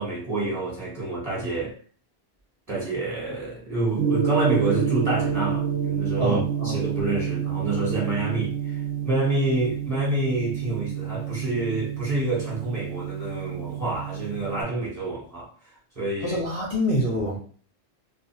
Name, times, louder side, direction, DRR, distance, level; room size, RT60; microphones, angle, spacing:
voice 1, 0.0-1.8 2.7-6.4 6.6-15.5 16.0-16.4, right 2 dB, 35° right, 1.1 m, -28 dB
Gong, 4.0-14.6, right 8 dB, 70° right, 0.8 m, -28 dB
voice 2, 6.2-6.8 16.2-17.4, equal, 35° left, 0.7 m, -26 dB
2.6 x 2.3 x 2.6 m
omnidirectional pair, 1.1 m